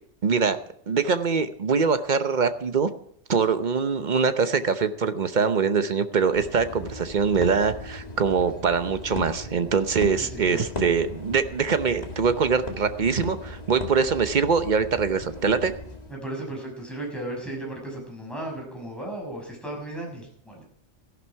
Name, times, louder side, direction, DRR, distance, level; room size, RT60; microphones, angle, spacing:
voice 1, 0.2-0.6 0.9-2.9 3.3-15.7, right 5 dB, 40° right, 10 dB, 0.9 m, -23 dB
sound 1, 6.3-16.1, left 2 dB, 30° left, 2.0 m, -37 dB
voice 2, 10.2-10.6 16.1-20.6, right 1 dB, ahead, -1 dB, 6.0 m, -35 dB
14.5 x 11.5 x 4.6 m, 0.66 s
omnidirectional pair, 1.3 m